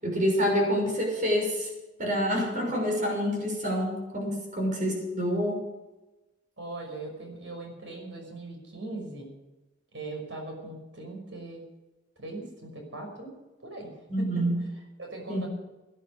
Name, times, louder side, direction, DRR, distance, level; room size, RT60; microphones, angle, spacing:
voice 1, 0.0-1.7 2.0-5.6 14.1-14.5 15.3-15.5, equal, 45° right, 1 dB, 6.2 m, -27 dB
voice 2, 6.6-9.3 9.9-11.6 12.2-13.3 13.6-14.4 15.0-15.5, right 2 dB, 80° right, 2 dB, 5.7 m, -40 dB
17.0 x 11.0 x 6.7 m, 1.1 s
head